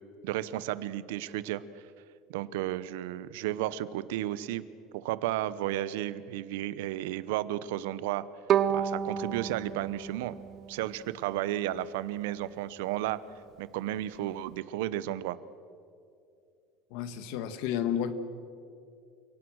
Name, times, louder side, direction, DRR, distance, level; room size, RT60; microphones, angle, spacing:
voice 1, 0.2-1.6 2.3-4.6 4.9-8.2 8.7-10.3 10.7-13.2 13.6-15.4, right 13 dB, 85° right, 16 dB, 0.9 m, -33 dB
Bowed string instrument, 8.5-11.6, right 9 dB, 35° right, 0.7 m, -31 dB
voice 2, 16.9-18.1, left 9 dB, 65° left, 11 dB, 1.7 m, -31 dB
29.5 x 17.5 x 6.4 m, 2.5 s
cardioid pair, 165°, 0 cm